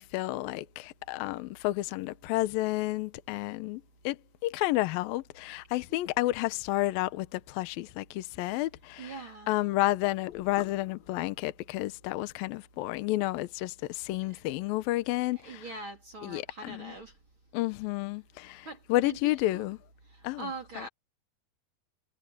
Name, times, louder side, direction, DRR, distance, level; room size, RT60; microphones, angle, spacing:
voice 1, 0.0-9.2 9.5-15.6 16.2-16.9 17.5-19.8 20.2-20.5 20.8-20.9, left 17 dB, 75° left, 2.3 m, -31 dB
voice 2, 9.0-9.5 15.4-17.1 18.6-19.7 20.1-20.9, right 2 dB, 30° right, 3.7 m, -42 dB
omnidirectional pair, 4.9 m